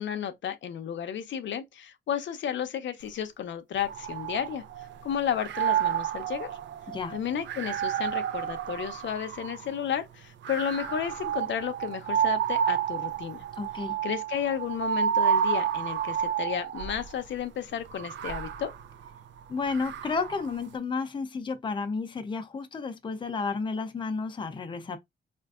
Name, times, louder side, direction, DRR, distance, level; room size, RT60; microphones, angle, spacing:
voice 1, 0.0-4.6 5.0-6.6 7.1-13.4 14.0-18.7, left 9 dB, 80° left, 0.5 m, -32 dB
sound 1, 3.8-5.0 5.4-9.7 10.4-17.1 17.9-20.5, right 9 dB, 80° right, 0.4 m, -30 dB
voice 2, 13.6-14.0 19.5-25.0, left 4 dB, 25° left, 0.5 m, -32 dB
4.3 x 2.5 x 2.3 m
wide cardioid pair, 165°, 19 cm